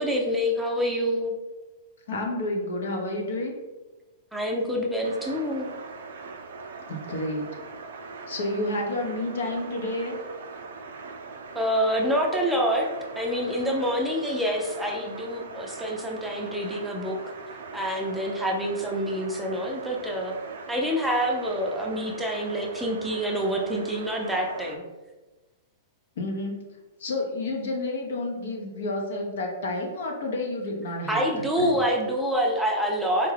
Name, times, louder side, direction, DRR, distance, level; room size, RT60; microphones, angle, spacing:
voice 1, 0.0-1.3 4.3-5.7 11.5-12.9 13.2-17.2 17.7-20.4 20.7-24.9 31.1-33.3, equal, 5° right, -1 dB, 0.5 m, -26 dB
voice 2, 2.1-3.5 6.9-7.5 8.3-10.2 26.2-26.7 27.0-31.8, left 2 dB, 75° left, 1 dB, 0.7 m, -30 dB
sound 1, 5.0-24.8, right 4 dB, 75° right, 0.4 m, -41 dB
3.7 x 2.2 x 3.3 m, 1.2 s
hypercardioid pair, 130°, 0 cm